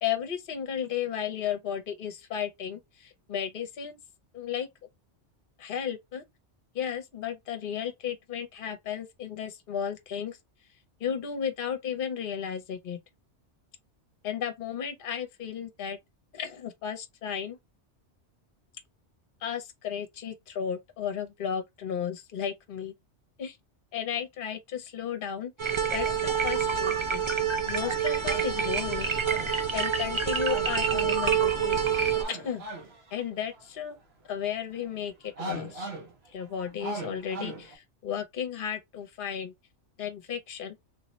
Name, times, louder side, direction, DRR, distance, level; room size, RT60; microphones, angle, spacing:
voice 1, 0.0-4.0 4.3-4.7 5.6-6.2 6.7-10.4 11.0-13.0 14.2-16.0 16.3-17.6 19.4-22.9 23.4-23.6 23.9-27.2 27.6-29.1 29.7-31.8 32.2-32.6 33.1-34.0 34.3-35.9 36.3-39.5 40.0-40.8, left 8 dB, 50° left, 0.9 m, -34 dB
sound 1, 25.6-32.2, right 7 dB, 45° right, 0.4 m, -27 dB
sound 2, 26.6-27.2 27.4-34.0 34.5-35.1 35.4-37.8, right 2 dB, 65° right, 1.2 m, -41 dB
3.4 x 2.8 x 3.0 m
omnidirectional pair, 1.2 m